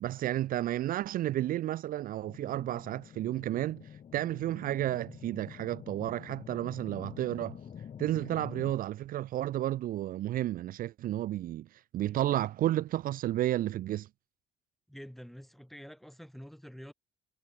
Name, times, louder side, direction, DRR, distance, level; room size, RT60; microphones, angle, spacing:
voice 1, 0.0-7.6 8.0-14.1, right 13 dB, 55° right, 0.5 m, -32 dB
sound 1, 2.2-8.7, left 8 dB, 45° left, 2.6 m, -47 dB
voice 2, 14.9-16.9, equal, ahead, 1.2 m, -47 dB
cardioid pair, 110°, 17 cm